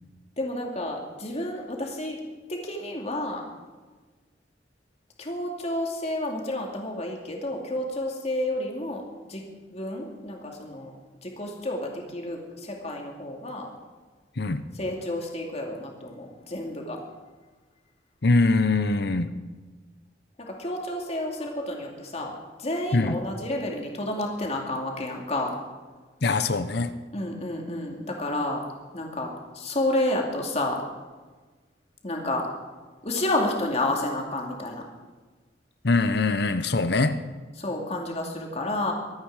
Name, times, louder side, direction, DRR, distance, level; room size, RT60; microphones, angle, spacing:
voice 1, 0.4-2.2 2.5-3.5 5.2-9.4 9.7-10.9 11.2-13.7 14.7-17.0 20.4-25.5 27.1-28.6 28.9-30.8 32.0-32.5 33.0-34.8 37.6-38.9, left 1 dB, 35° left, 2.5 m, -30 dB
voice 2, 14.4-14.7 18.2-19.3 22.9-23.2 26.2-26.9 35.8-37.2, left 3 dB, 60° left, 0.9 m, -23 dB
23.5 x 9.3 x 4.9 m
head